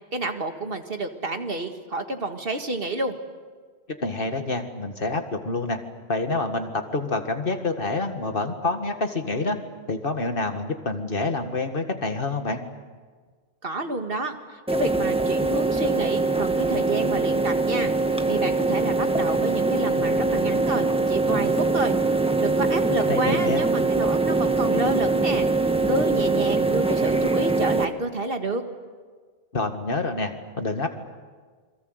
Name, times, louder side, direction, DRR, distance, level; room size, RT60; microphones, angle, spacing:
voice 1, 0.1-3.2 13.6-17.9 18.3-21.9 22.4-25.5 25.9-28.6, right 2 dB, 60° right, 6 dB, 2.1 m, -29 dB
voice 2, 4.0-5.8 6.1-9.6 9.9-12.6 23.1-23.6 29.5-30.3 30.6-30.9, left 3 dB, 60° left, 6 dB, 2.1 m, -27 dB
sound 1, 14.7-27.9, right 3 dB, 5° right, 1.4 m, -23 dB
28.0 x 22.5 x 8.1 m, 1.5 s
omnidirectional pair, 1.1 m